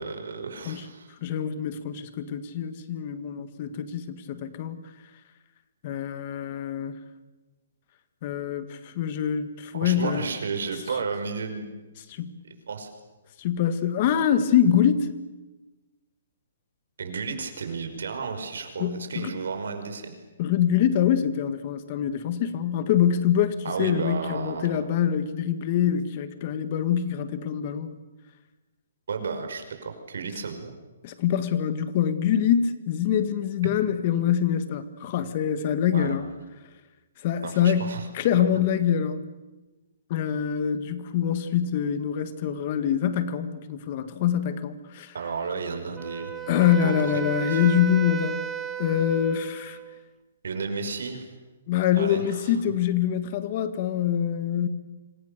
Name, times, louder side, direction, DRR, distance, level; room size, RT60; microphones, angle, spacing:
voice 1, 0.0-1.1 9.8-11.7 12.4-12.9 17.0-20.1 23.6-24.8 29.1-30.7 35.9-36.2 37.4-38.1 38.5-38.6 45.1-46.3 46.7-47.7 50.4-51.3 52.0-52.6, right 5 dB, 80° right, 6 dB, 5.3 m, -33 dB
voice 2, 1.2-4.8 5.8-7.0 8.2-10.3 12.1-12.4 13.4-15.1 18.8-19.3 20.4-28.0 31.0-36.3 37.2-39.2 40.1-45.1 46.5-48.4 48.8-49.8 51.7-54.7, left 9 dB, 35° left, 11 dB, 1.8 m, -25 dB
Wind instrument woodwind instrument, 46.0-50.0, right 9 dB, 10° right, 1.3 m, -34 dB
27.5 x 26.0 x 6.8 m, 1.2 s
hypercardioid pair, 160°, 0 cm